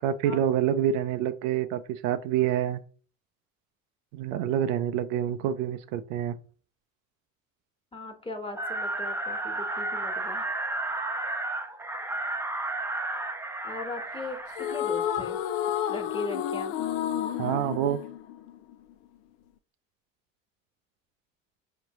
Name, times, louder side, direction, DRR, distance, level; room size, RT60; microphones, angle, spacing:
voice 1, 0.0-2.8 4.1-6.4 17.4-18.0, right 10 dB, 70° right, 11 dB, 0.6 m, -27 dB
voice 2, 7.9-10.4 13.6-15.4 15.9-16.8, left 2 dB, 15° left, 4 dB, 1.4 m, -38 dB
sound 1, 8.6-14.8, right 2 dB, 5° right, 0.6 m, -32 dB
sound 2, 14.5-18.9, left 10 dB, 65° left, 0.6 m, -31 dB
4.9 x 3.2 x 3.1 m, 0.39 s
hypercardioid pair, 65°, 40 cm